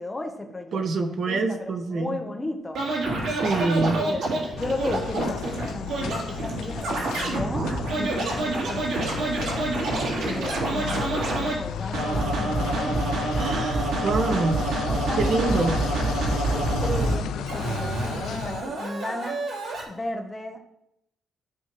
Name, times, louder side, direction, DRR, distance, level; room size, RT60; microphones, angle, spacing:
voice 1, 0.0-2.8 3.6-3.7 4.0-4.2 4.6-7.7 8.0-9.7 10.2-13.1 14.9-15.7 16.3-19.4 19.9-20.6, left 2 dB, 15° left, 4 dB, 1.0 m, -34 dB
voice 2, 0.7-2.2 3.4-4.0 13.4-14.6 15.2-15.8, right 3 dB, 50° right, 6 dB, 1.0 m, -26 dB
Scratching (performance technique), 2.7-11.5 11.9-17.1 17.5-19.8, right 2 dB, 90° right, 3.3 m, -27 dB
sound 1, 4.6-18.6, left 9 dB, 90° left, 0.5 m, -34 dB
14.0 x 6.3 x 3.1 m, 0.81 s
cardioid pair, 150°, 0 cm